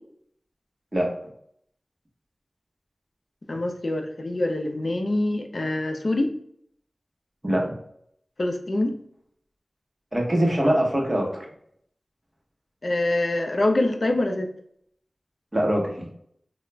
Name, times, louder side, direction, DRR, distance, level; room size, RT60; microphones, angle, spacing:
voice 1, 3.5-6.3 8.4-8.9 12.8-14.5, left 1 dB, 60° left, 4 dB, 0.4 m, -25 dB
voice 2, 10.1-11.4 15.5-16.1, right 1 dB, 30° right, -1 dB, 0.9 m, -23 dB
2.3 x 2.0 x 3.2 m, 0.68 s
cardioid pair, 45°, 0 cm